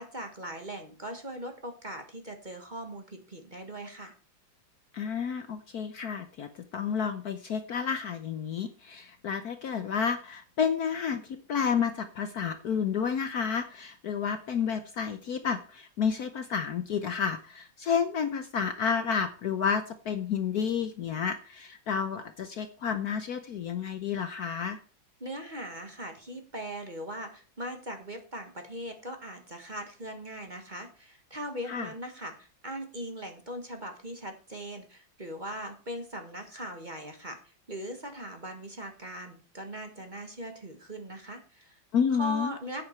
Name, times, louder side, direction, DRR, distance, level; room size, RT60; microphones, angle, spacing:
voice 1, 0.0-4.1 25.2-41.8 42.2-42.8, equal, 25° right, 5 dB, 1.4 m, -40 dB
voice 2, 4.9-24.8 31.7-31.9 41.9-42.5, left 6 dB, 60° left, 9 dB, 1.1 m, -30 dB
10.5 x 8.7 x 4.5 m, 0.35 s
omnidirectional pair, 2.2 m